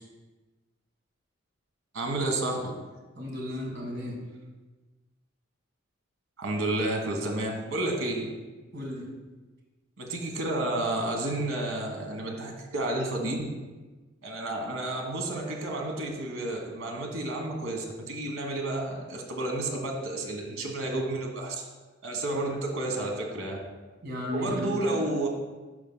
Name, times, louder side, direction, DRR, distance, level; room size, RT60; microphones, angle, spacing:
voice 1, 1.9-2.7 6.4-8.3 10.0-13.5 14.2-21.7 22.0-23.6 24.3-25.3, right 2 dB, 75° right, 1 dB, 1.3 m, -31 dB
voice 2, 3.2-4.2 8.7-9.1 22.3-22.4 24.0-24.8, left 1 dB, 55° right, -1 dB, 1.7 m, -34 dB
11.0 x 5.3 x 2.2 m, 1.2 s
head